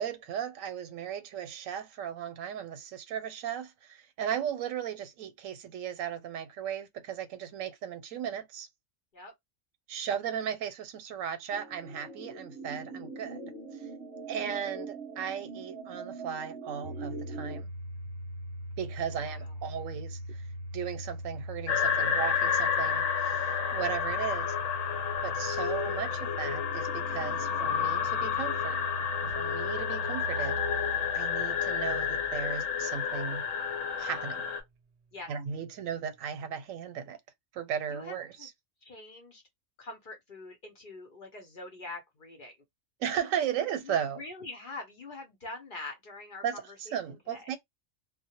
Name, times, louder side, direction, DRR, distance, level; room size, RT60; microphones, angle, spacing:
voice 1, 0.0-8.7 9.9-13.4 14.3-17.7 18.8-20.4 20.7-23.5 23.7-24.5 25.2-28.9 29.2-30.8 31.1-33.4 34.0-34.4 35.3-37.2 37.5-38.5 43.0-44.2 46.4-47.6, right 8 dB, 90° right, 1.0 m, -36 dB
sound 1, 11.5-17.6, right 4 dB, 25° right, 0.8 m, -42 dB
Domestic sounds home sounds, 16.8-33.8, right 1 dB, 65° right, 0.8 m, -41 dB
sound 2, 21.7-34.6, left 7 dB, 75° left, 1.0 m, -30 dB
voice 2, 37.9-38.5 38.8-39.4 39.8-42.5 43.8-46.4 46.9-47.0 47.3-47.5, left 2 dB, 50° left, 0.7 m, -44 dB
2.1 x 2.1 x 2.8 m
omnidirectional pair, 1.3 m